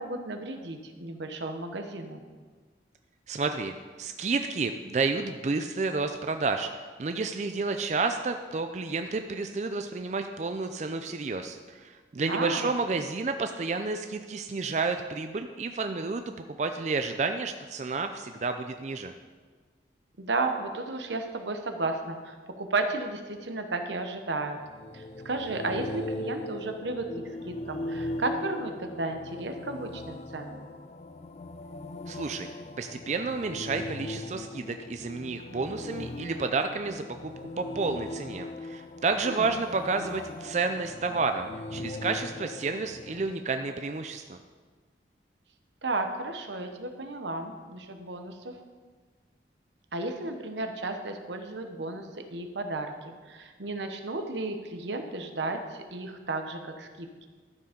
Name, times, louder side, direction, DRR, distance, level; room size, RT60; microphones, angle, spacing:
voice 1, 0.0-2.2 12.2-12.7 20.2-24.6 24.9-30.7 39.2-39.5 45.8-48.5 49.9-57.3, right 2 dB, 85° right, 6 dB, 1.0 m, -33 dB
voice 2, 3.3-16.3 16.6-19.1 32.1-32.5 32.8-44.4, right 4 dB, 40° right, 7 dB, 0.4 m, -30 dB
sound 1, 24.5-43.3, left 2 dB, 35° left, 0.4 m, -39 dB
12.0 x 7.0 x 5.1 m, 1.5 s
head